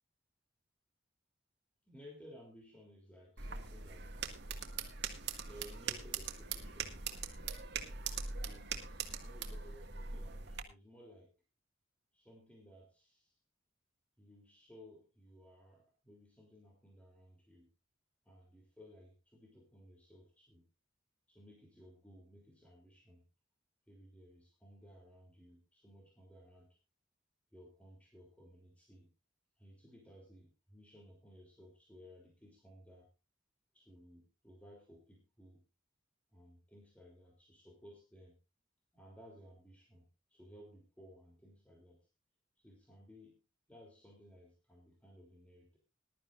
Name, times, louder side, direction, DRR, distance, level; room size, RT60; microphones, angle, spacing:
voice 1, 1.8-4.4 5.1-7.0 8.4-11.3 12.1-13.4 14.2-17.7 18.3-20.7 21.3-23.3 23.9-26.8 27.5-29.1 29.6-33.1 33.7-35.7 36.3-38.4 38.9-42.1 42.6-43.4 43.7-45.8, equal, 5° left, -1 dB, 3.3 m, -58 dB
sound 1, 3.4-10.6, right 5 dB, 60° right, 2.0 m, -42 dB
21.0 x 12.0 x 2.6 m, 0.27 s
head